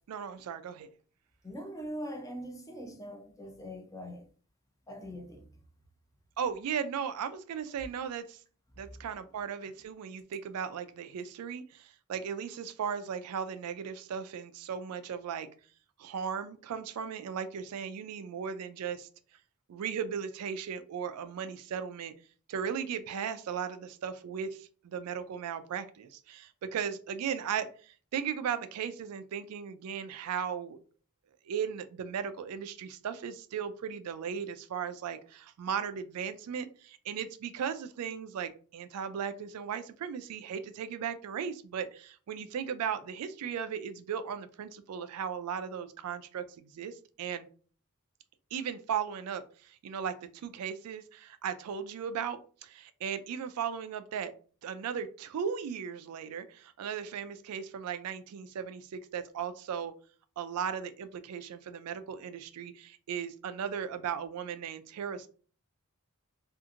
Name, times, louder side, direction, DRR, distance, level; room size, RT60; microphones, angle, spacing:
voice 1, 0.1-0.9 6.4-8.4 8.8-15.5 16.0-19.1 19.7-22.1 22.5-30.8 31.5-47.5 48.5-54.3 54.6-59.9 60.4-65.3, right 7 dB, 80° right, 0.3 m, -37 dB
voice 2, 1.4-4.3 4.9-5.6, equal, 15° left, 0.5 m, -42 dB
2.8 x 2.5 x 2.4 m
head